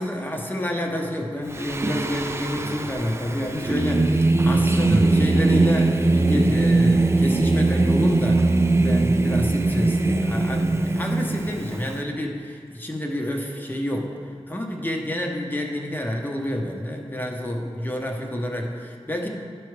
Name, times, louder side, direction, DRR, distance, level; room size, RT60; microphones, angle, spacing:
voice 1, 0.0-8.5 8.7-19.3, left 1 dB, 20° left, 1 dB, 1.0 m, -29 dB
Singing, 1.5-11.9, right 2 dB, 25° right, 0.4 m, -21 dB
11.5 x 4.7 x 3.3 m, 2.1 s
wide cardioid pair, 55°, 11 cm